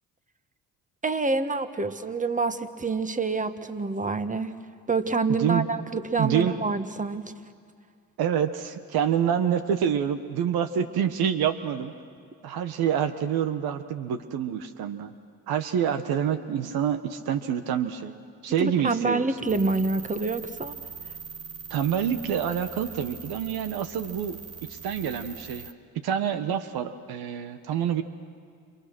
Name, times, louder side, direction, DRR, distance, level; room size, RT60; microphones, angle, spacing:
voice 1, 1.0-4.5 4.9-7.3 18.6-20.8, right 3 dB, 20° right, 10 dB, 1.6 m, -27 dB
voice 2, 5.3-5.7 6.2-6.6 8.2-11.9 12.4-15.1 15.5-18.1 18.4-19.3 21.7-24.4 24.7-25.7 26.0-28.0, right 8 dB, 75° right, 10 dB, 1.3 m, -27 dB
sound 1, 19.5-25.7, right 6 dB, 40° right, 1.4 m, -42 dB
30.0 x 28.0 x 6.2 m, 2.2 s
supercardioid pair, 60°, 37 cm